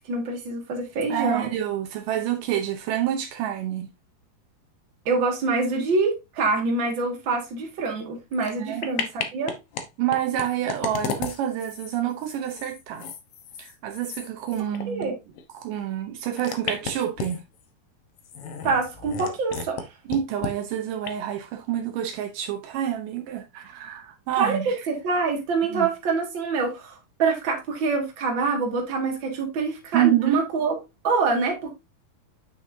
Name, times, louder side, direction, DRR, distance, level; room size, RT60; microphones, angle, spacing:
voice 1, 0.1-1.5 5.1-9.5 14.9-15.2 18.6-19.8 24.4-24.6 24.9-30.8 31.0-31.7, right 4 dB, 40° right, 2.4 m, -25 dB
voice 2, 1.1-3.9 8.6-8.9 10.0-13.1 13.6-15.1 15.5-17.4 20.1-24.8 25.7-25.9 29.9-30.4, right 11 dB, 80° right, 2.5 m, -28 dB
sound 1, 8.3-8.5 8.8-9.8 10.1-15.1 15.4-15.5 16.3-17.6 18.2-19.8 20.1-20.5 21.0-21.1, left 6 dB, 65° left, 1.5 m, -33 dB
8.5 x 6.2 x 2.7 m
omnidirectional pair, 3.9 m